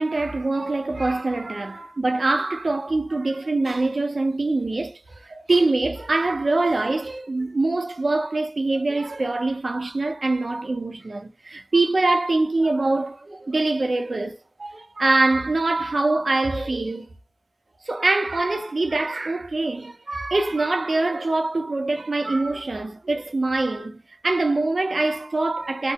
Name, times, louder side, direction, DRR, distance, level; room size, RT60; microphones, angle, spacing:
voice 1, 0.0-17.1 17.9-24.0 24.2-25.9, right 2 dB, 85° right, 0.5 m, -24 dB
2.3 x 2.1 x 2.8 m
wide cardioid pair, 55°, 0 cm